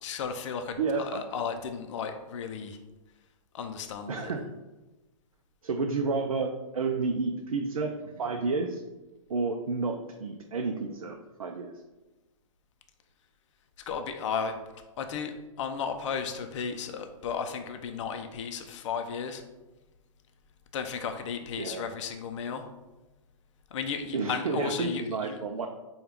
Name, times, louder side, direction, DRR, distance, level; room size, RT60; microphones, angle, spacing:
voice 1, 0.0-2.8 3.5-4.3 13.9-14.6 15.0-19.4 20.7-22.6 23.7-25.4, left 6 dB, 60° left, 6 dB, 0.5 m, -34 dB
voice 2, 0.8-1.2 4.1-4.4 5.6-8.8 9.3-11.8 21.6-21.8 24.1-25.7, right 4 dB, 90° right, 3 dB, 0.4 m, -30 dB
4.4 x 2.3 x 3.4 m, 1.1 s
hypercardioid pair, 120°, 18 cm